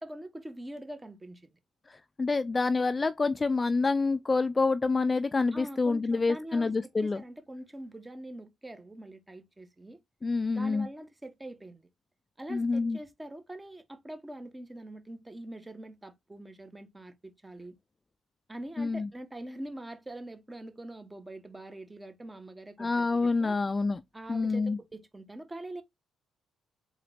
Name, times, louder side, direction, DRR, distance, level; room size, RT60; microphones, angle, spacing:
voice 1, 0.0-1.6 5.5-10.0 10.5-11.9 12.4-17.7 18.5-23.6 24.1-25.8, right 1 dB, 15° right, 1.1 m, -44 dB
voice 2, 2.2-7.2 10.2-10.9 12.5-13.0 18.8-19.1 22.8-24.0 24.3-24.8, left 3 dB, 25° left, 0.4 m, -27 dB
3.9 x 3.9 x 3.3 m
cardioid pair, 90°, 0 cm